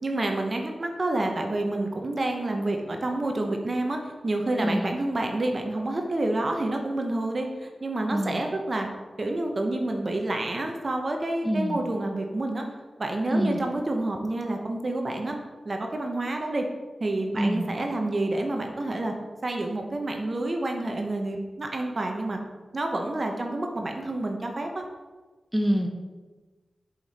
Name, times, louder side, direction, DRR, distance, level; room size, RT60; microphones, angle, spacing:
voice 1, 0.0-8.9 9.2-12.7 13.0-15.4 15.6-16.7 17.0-19.1 19.4-22.4 22.7-24.8, right 2 dB, 50° right, 3 dB, 0.9 m, -28 dB
voice 2, 11.4-11.8 13.3-13.6 17.4-17.7 25.5-25.9, equal, 5° right, 3 dB, 1.1 m, -25 dB
7.0 x 5.2 x 4.2 m, 1.3 s
cardioid pair, 45°, 0 cm